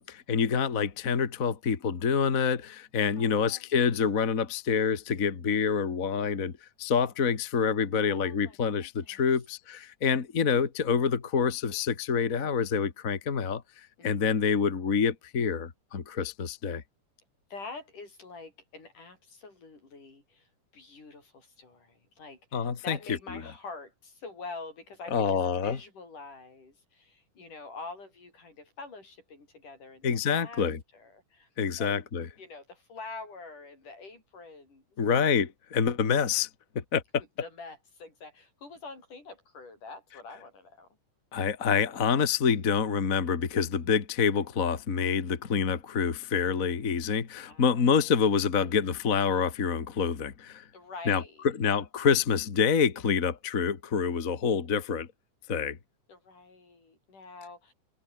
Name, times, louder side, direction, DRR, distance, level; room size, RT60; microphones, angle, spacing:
voice 1, 0.0-6.5 6.8-16.8 22.5-23.0 25.1-25.8 30.0-30.8 31.6-32.3 35.0-36.5 36.7-37.0 41.3-50.6 51.1-51.2 51.5-55.1 55.5-55.8, left 6 dB, 35° left, 1.6 m, -27 dB
voice 2, 3.2-3.7 8.0-9.2 14.0-14.6 17.5-30.7 30.9-31.5 31.8-32.1 32.4-35.0 37.4-41.0 47.5-48.1 48.5-48.9 50.7-51.5 56.1-57.7, left 3 dB, 70° left, 9.2 m, -46 dB
omnidirectional pair, 3.7 m